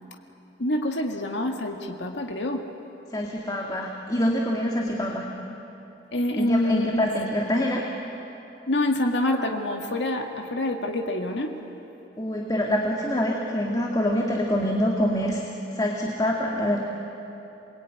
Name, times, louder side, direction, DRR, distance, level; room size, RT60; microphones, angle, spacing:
voice 1, 0.6-2.6 6.1-7.1 8.7-11.5, left 1 dB, 75° left, 2 dB, 1.9 m, -26 dB
voice 2, 3.1-5.3 6.4-7.9 12.2-15.4 15.7-16.8, equal, 20° left, 0 dB, 2.0 m, -25 dB
28.0 x 21.5 x 9.4 m, 3.0 s
head